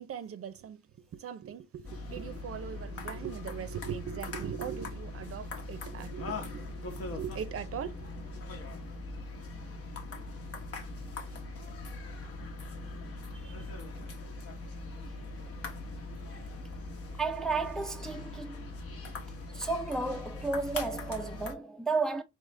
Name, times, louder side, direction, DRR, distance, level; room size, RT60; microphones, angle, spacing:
voice 1, 0.0-8.4, right 8 dB, 50° right, 0.7 m, -40 dB
sound 1, 1.8-21.5, left 2 dB, 50° left, 1.1 m, -41 dB
voice 2, 13.3-13.7 17.1-18.8 19.5-22.2, right 4 dB, ahead, 0.5 m, -33 dB
3.7 x 2.9 x 3.3 m
cardioid pair, 90°, 30 cm